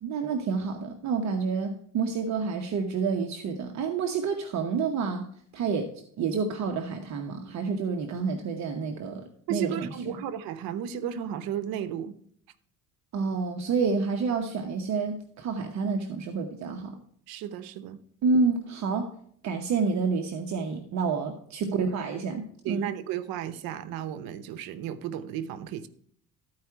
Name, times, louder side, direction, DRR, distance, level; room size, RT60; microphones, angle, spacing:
voice 1, 0.0-5.3 5.5-5.9 6.2-9.9 13.1-17.0 18.2-19.1 19.4-22.8, right 4 dB, 50° right, 1.0 m, -29 dB
voice 2, 9.5-12.2 17.3-18.0 21.7-21.8 22.6-25.9, right 10 dB, 80° right, 0.9 m, -34 dB
13.0 x 4.8 x 4.6 m
cardioid pair, 135°, 35 cm